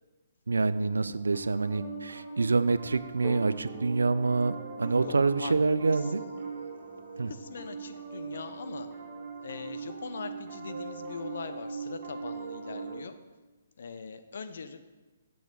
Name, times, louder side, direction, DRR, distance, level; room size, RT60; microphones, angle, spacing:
Piano, 0.5-13.0, right 5 dB, 40° right, 1.6 m, -40 dB
voice 1, 0.5-6.2 7.2-7.3, right 3 dB, 85° right, 15 dB, 0.3 m, -27 dB
voice 2, 5.0-6.4 7.3-8.9 9.4-13.1 13.8-14.8, left 5 dB, 65° left, 10 dB, 0.6 m, -42 dB
sound 1, 6.7-6.9, right 5 dB, ahead, 0.7 m, -48 dB
7.7 x 6.8 x 3.7 m, 1.2 s
hypercardioid pair, 140°, 0 cm